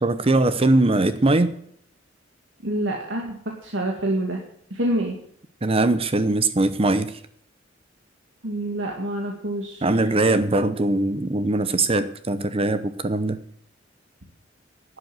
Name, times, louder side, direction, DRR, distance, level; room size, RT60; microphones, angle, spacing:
voice 1, 0.0-1.5 5.6-7.1 9.8-13.4, right 2 dB, 30° right, 12 dB, 0.8 m, -21 dB
voice 2, 2.6-4.4 4.7-5.2 8.4-9.9, right 1 dB, 70° right, 0 dB, 2.2 m, -27 dB
12.0 x 8.1 x 9.2 m, 0.67 s
head